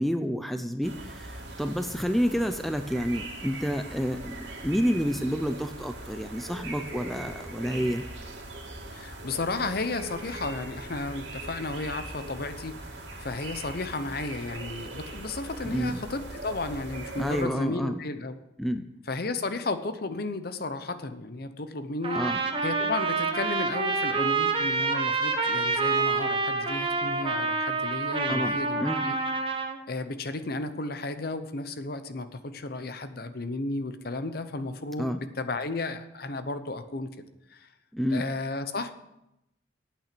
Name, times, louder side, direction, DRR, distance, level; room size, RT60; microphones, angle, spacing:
voice 1, 0.0-8.0 15.6-16.0 17.2-18.0 18.6-18.8 22.1-22.4 28.3-29.1 35.0-35.2 37.9-38.3, equal, ahead, 8 dB, 0.5 m, -29 dB
sound 1, 0.8-17.4, right 2 dB, 65° right, 2.5 m, -41 dB
voice 2, 8.9-18.4 19.1-22.2 22.6-29.2 29.9-37.1 37.5-37.7 38.1-38.9, left 2 dB, 55° left, 11 dB, 0.8 m, -33 dB
Trumpet, 22.0-29.8, right 4 dB, 30° right, 1.1 m, -27 dB
9.1 x 8.7 x 6.8 m, 0.87 s
head